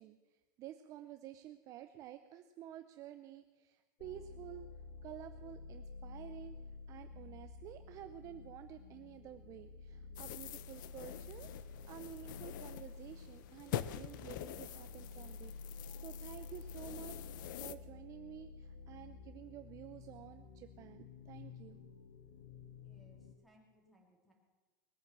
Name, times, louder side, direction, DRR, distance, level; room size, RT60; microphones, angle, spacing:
voice 1, 0.0-4.7 5.0-6.6 6.9-21.9, right 11 dB, 30° right, 9 dB, 0.6 m, -51 dB
sound 1, 4.0-23.3, left 4 dB, 85° left, 1.9 m, -51 dB
sound 2, 10.2-17.8, left 12 dB, 65° left, 0.7 m, -46 dB
voice 2, 22.8-24.3, right 1 dB, ahead, 0 dB, 3.1 m, -68 dB
20.5 x 9.4 x 7.4 m, 1.3 s
supercardioid pair, 165°, 11 cm